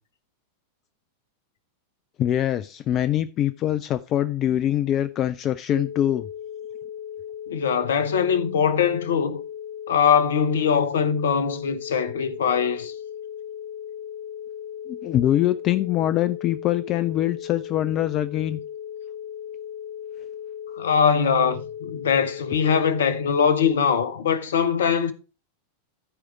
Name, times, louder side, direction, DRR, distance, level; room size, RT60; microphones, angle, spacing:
voice 1, 2.2-6.3 14.9-18.6, left 12 dB, 35° left, 0.5 m, -23 dB
sound 1, 5.7-23.7, left 9 dB, 80° right, 4.4 m, -37 dB
voice 2, 7.5-9.4 9.9-12.9 20.8-25.1, left 7 dB, 65° left, 1.0 m, -22 dB
13.5 x 5.0 x 4.5 m
figure-of-eight pair, 90°, 0 cm